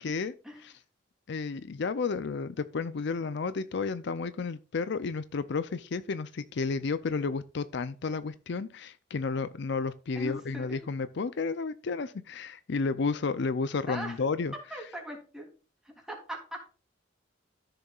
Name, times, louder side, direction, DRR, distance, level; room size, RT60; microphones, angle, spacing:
voice 1, 0.0-0.3 0.6-0.7 1.3-14.5, left 4 dB, 65° left, 0.5 m, -32 dB
voice 2, 10.1-10.8 13.9-14.2 14.7-15.5 15.8-16.7, equal, 5° right, 3.1 m, -40 dB
13.5 x 6.8 x 2.4 m
head